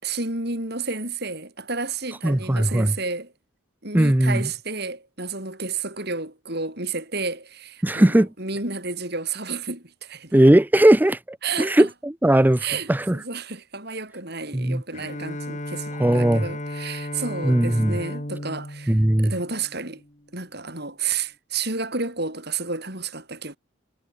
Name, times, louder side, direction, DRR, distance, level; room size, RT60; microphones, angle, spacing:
voice 1, 0.0-3.3 3.8-10.3 11.4-11.9 12.6-20.0 20.3-23.6, right 4 dB, 50° right, 7.2 m, -31 dB
voice 2, 2.2-2.9 3.9-4.5 7.8-8.3 10.3-13.2 14.5-14.8 16.0-16.5 17.4-18.0 18.9-19.3, right 1 dB, 10° right, 0.4 m, -18 dB
Bowed string instrument, 14.9-20.2, left 1 dB, 35° left, 3.3 m, -34 dB
head